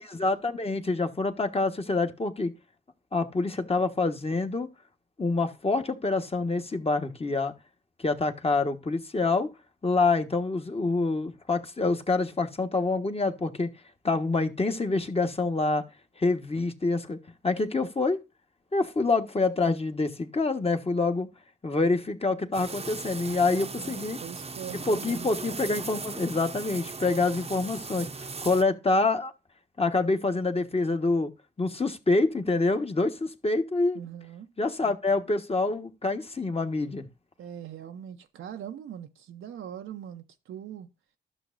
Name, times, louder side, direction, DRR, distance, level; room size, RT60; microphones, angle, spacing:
voice 1, 0.0-2.5 3.1-4.7 5.2-7.5 8.0-9.5 9.8-13.7 14.0-15.8 16.2-17.2 17.4-18.2 18.7-21.3 21.6-24.2 24.9-29.3 29.8-31.3 31.6-34.0 34.6-37.1, left 3 dB, 30° left, 1.3 m, -26 dB
sound 1, 22.5-28.6, right 4 dB, 30° right, 0.7 m, -38 dB
voice 2, 23.3-25.3 33.9-34.5 37.4-40.9, right 9 dB, 75° right, 0.6 m, -41 dB
12.0 x 6.3 x 2.5 m
supercardioid pair, 50°, 20 cm